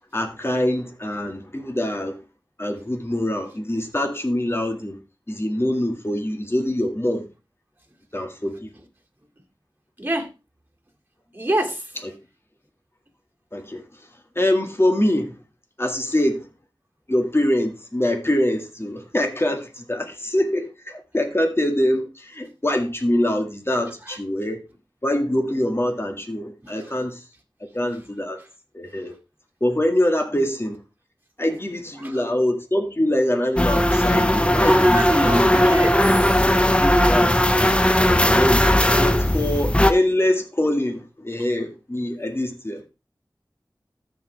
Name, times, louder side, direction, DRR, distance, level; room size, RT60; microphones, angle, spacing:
voice 1, 0.1-2.2 2.6-5.0 5.3-7.3 8.1-8.7 13.5-13.8 14.4-15.4 15.8-16.5 17.1-24.6 25.0-27.2 27.7-28.4 28.7-29.1 29.6-30.8 31.4-35.5 36.4-36.5 37.1-37.7 38.3-38.7 39.0-42.8, left 1 dB, 30° left, 1.9 m, -24 dB
voice 2, 10.0-10.3 11.3-11.9 24.1-24.2 26.6-26.9 32.0-32.2 34.6-36.3 36.8-37.2 39.2-39.5, right 1 dB, 25° right, 2.3 m, -26 dB
sound 1, 33.6-39.9, left 1 dB, 15° left, 0.8 m, -18 dB
14.0 x 5.1 x 3.4 m
wide cardioid pair, 40°, 8 cm